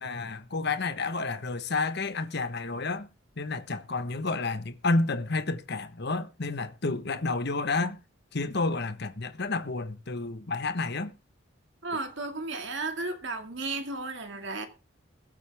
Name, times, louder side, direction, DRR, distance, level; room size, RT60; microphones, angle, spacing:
voice 1, 0.0-3.1 3.4-8.0 8.3-11.1, left 3 dB, 55° left, 1.2 m, -30 dB
voice 2, 11.8-14.7, right 3 dB, 60° right, 2.2 m, -34 dB
21.5 x 8.2 x 3.5 m
head